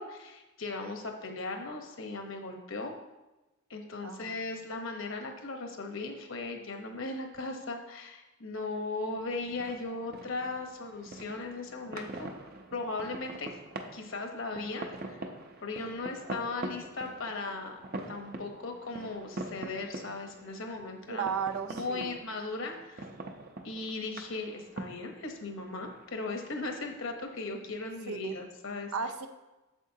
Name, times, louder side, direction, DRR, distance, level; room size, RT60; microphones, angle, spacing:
voice 1, 0.0-2.9 3.7-12.3 12.7-13.5 13.9-15.3 15.6-17.8 18.1-21.3 21.7-23.1 23.6-28.9, left 3 dB, 65° left, 4 dB, 1.0 m, -37 dB
voice 2, 4.0-4.4 21.1-22.2 28.1-28.4 28.9-29.3, right 6 dB, 85° right, 7 dB, 0.6 m, -35 dB
sound 1, 9.2-28.4, right 2 dB, 45° right, 0.7 m, -45 dB
8.4 x 7.3 x 2.8 m, 1.1 s
head